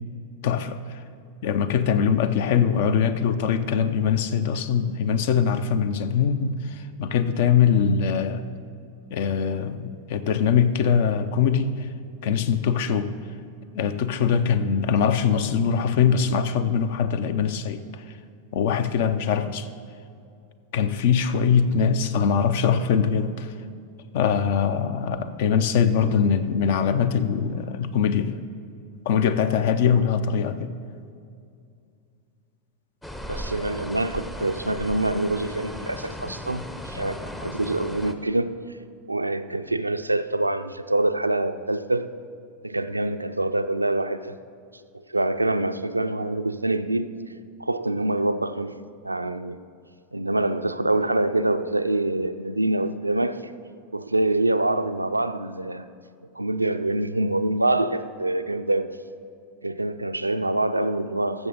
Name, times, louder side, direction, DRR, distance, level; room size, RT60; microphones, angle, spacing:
voice 1, 0.4-1.0 1.4-8.5 9.1-11.9 12.2-13.1 13.7-18.0 18.5-19.7 20.7-23.5 24.1-28.4 29.1-30.7, left 7 dB, 50° left, 0.5 m, -22 dB
sound 1, 33.0-38.1, equal, 10° left, 0.6 m, -36 dB
voice 2, 33.3-38.6 39.1-42.1 42.6-44.4 45.1-47.2 47.6-48.7 49.0-49.6 50.1-53.5 53.9-55.9 56.4-59.0 59.6-61.5, right 2 dB, 85° right, 0.3 m, -25 dB
13.5 x 7.1 x 4.0 m
figure-of-eight pair, 90°, 0 cm